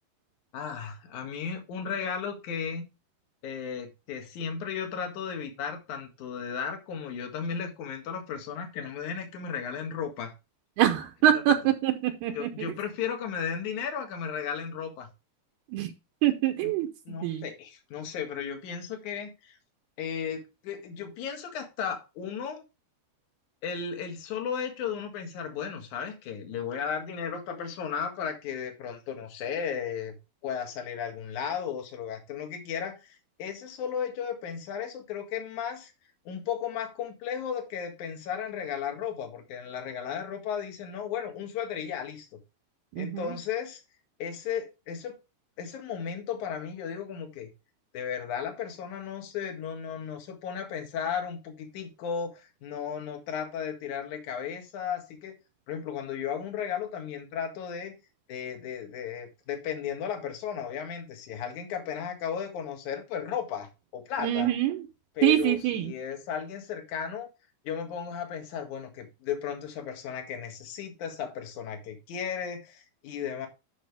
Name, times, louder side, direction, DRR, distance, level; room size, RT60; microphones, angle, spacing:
voice 1, 0.5-2.8 3.4-10.3 11.3-11.4 12.3-15.1 16.6-16.7 17.1-19.6 20.0-22.6 23.6-30.1 30.4-35.9 36.3-42.4 43.0-43.8 44.2-45.2 45.6-47.5 47.9-55.3 55.7-57.9 58.3-64.5 65.2-67.3 67.6-73.5, left 7 dB, 55° left, 2.8 m, -35 dB
voice 2, 10.8-12.7 15.7-15.9 16.2-17.4 43.0-43.3 64.2-64.8 65.2-65.9, right 11 dB, 80° right, 2.7 m, -25 dB
11.5 x 5.9 x 3.4 m
omnidirectional pair, 4.8 m